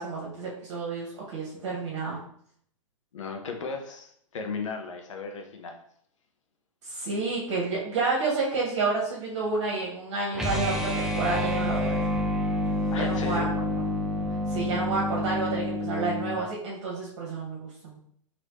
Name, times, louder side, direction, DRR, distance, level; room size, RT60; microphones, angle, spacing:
voice 1, 0.0-2.2 6.8-12.0 13.0-13.4 14.5-18.0, right 3 dB, 55° right, -4 dB, 1.1 m, -30 dB
voice 2, 3.1-5.8 12.9-13.5, left 4 dB, 65° left, 3 dB, 0.8 m, -35 dB
sound 1, 10.3-16.4, left 1 dB, 5° right, 0.3 m, -28 dB
3.2 x 2.9 x 3.0 m, 0.65 s
figure-of-eight pair, 110°, 17 cm